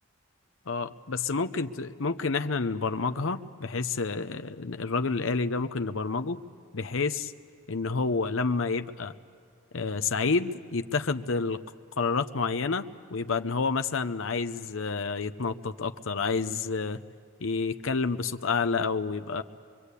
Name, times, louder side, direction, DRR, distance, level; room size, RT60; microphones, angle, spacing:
voice 1, 0.7-6.4 6.7-7.3 7.7-9.1 9.7-11.6 12.0-17.0 17.4-19.4, left 4 dB, 70° left, 8 dB, 0.8 m, -29 dB
24.5 x 23.5 x 8.3 m, 2.3 s
head